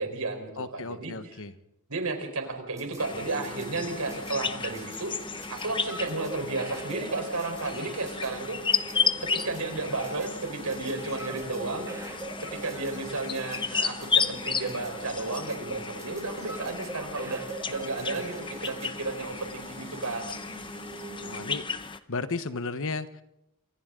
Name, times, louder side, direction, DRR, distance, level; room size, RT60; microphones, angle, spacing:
voice 1, 0.0-1.4 1.9-5.1 5.5-8.6 8.9-9.0 9.3-11.9 12.5-20.3, right 3 dB, 85° right, 5 dB, 4.4 m, -33 dB
voice 2, 0.6-1.5 21.2-21.7 22.1-23.2, left 3 dB, 65° left, 11 dB, 1.2 m, -34 dB
sound 1, 2.5-18.9, right 2 dB, 15° right, 2.0 m, -44 dB
sound 2, 2.9-21.8, right 2 dB, 35° right, 2.8 m, -45 dB
sound 3, 3.0-22.0, left 6 dB, 20° left, 0.8 m, -34 dB
27.5 x 25.0 x 3.9 m, 0.86 s
head